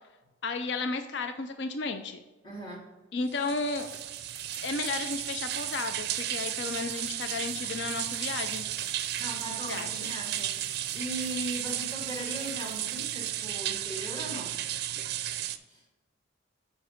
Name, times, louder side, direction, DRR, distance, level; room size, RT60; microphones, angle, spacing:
voice 1, 0.4-2.2 3.1-3.9 4.6-8.6 9.7-10.1, left 3 dB, 60° left, 8 dB, 0.5 m, -33 dB
voice 2, 2.4-2.9 9.2-14.6 15.7-15.8, right 1 dB, 20° left, -2 dB, 2.0 m, -39 dB
sound 1, 3.3-15.6, right 12 dB, 50° right, 0.4 m, -34 dB
sound 2, 3.7-13.5, right 3 dB, 5° right, 1.0 m, -50 dB
7.7 x 5.2 x 5.0 m, 1.2 s
head